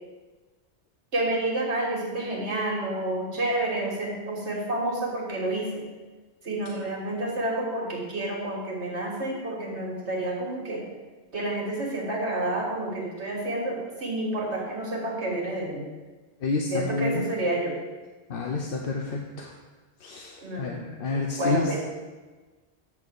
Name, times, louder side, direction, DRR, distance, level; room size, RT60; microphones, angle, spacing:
voice 1, 1.1-5.8 6.4-10.9 11.3-15.8 16.7-17.8 20.4-20.8 21.4-21.8, right 1 dB, 80° right, -2 dB, 2.0 m, -29 dB
voice 2, 16.4-17.3 18.3-19.5 20.0-21.8, left 3 dB, 60° left, 1 dB, 0.8 m, -29 dB
8.3 x 3.6 x 6.7 m, 1.3 s
omnidirectional pair, 1.1 m